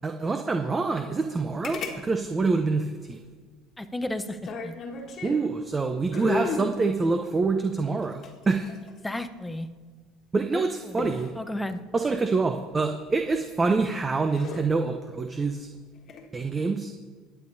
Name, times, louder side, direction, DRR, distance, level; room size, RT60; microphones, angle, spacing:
voice 1, 0.0-3.2 5.2-8.7 10.3-11.3 11.9-15.7 16.3-16.9, right 4 dB, 25° right, 6 dB, 0.7 m, -26 dB
sound 1, 1.6-2.3 4.2-5.5 6.1-6.8 8.0-9.2 11.0-11.4 13.2-13.6 14.1-14.6 16.0-16.3, left 4 dB, 45° left, 1.5 m, -34 dB
voice 2, 3.8-4.7 9.0-9.7 10.5-11.8, left 1 dB, 10° left, 10 dB, 0.8 m, -33 dB
21.5 x 8.6 x 2.7 m, 1.5 s
supercardioid pair, 90°, 0 cm